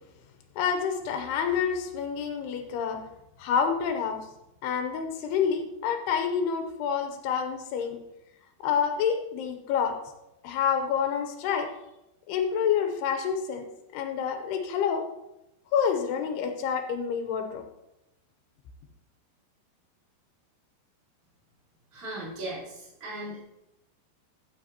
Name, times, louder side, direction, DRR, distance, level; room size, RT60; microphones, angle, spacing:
voice 1, 0.6-3.0 3.4-4.2 4.6-8.0 8.6-10.0 10.4-11.7 12.3-13.7 13.9-15.1 15.7-17.6, left 7 dB, 85° left, 6 dB, 2.8 m, -28 dB
voice 2, 21.9-23.4, right 1 dB, 35° right, -9 dB, 4.4 m, -37 dB
14.0 x 7.9 x 2.9 m, 0.88 s
omnidirectional pair, 4.6 m